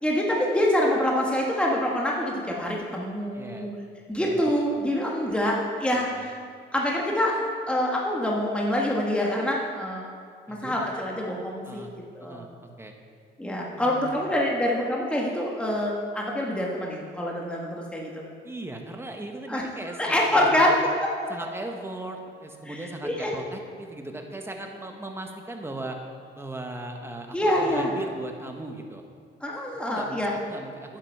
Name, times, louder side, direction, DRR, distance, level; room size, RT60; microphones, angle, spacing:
voice 1, 0.0-3.7 4.1-6.4 6.7-10.0 10.5-12.4 13.4-18.3 19.5-19.6 20.0-20.7 22.6-22.7 23.0-23.3 27.3-27.9 29.4-30.3, left 1 dB, 5° left, -2 dB, 1.5 m, -26 dB
voice 2, 3.3-3.7 4.1-4.5 5.9-6.3 10.5-10.8 11.6-11.9 12.2-12.9 13.8-14.2 18.4-20.7 21.3-26.0 26.3-29.0 29.9-31.0, right 2 dB, 10° right, 3 dB, 1.2 m, -38 dB
9.7 x 7.8 x 5.5 m, 2.1 s
cardioid pair, 90°, 20 cm